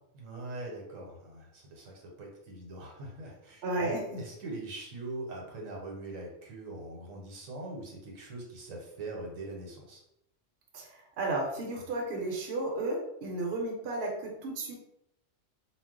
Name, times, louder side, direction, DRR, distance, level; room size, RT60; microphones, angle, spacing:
voice 1, 0.1-10.0, right 2 dB, 75° right, -1 dB, 1.1 m, -42 dB
voice 2, 3.6-4.2 10.7-14.8, right 2 dB, 60° right, 0 dB, 0.8 m, -33 dB
2.3 x 2.0 x 3.6 m, 0.80 s
omnidirectional pair, 1.4 m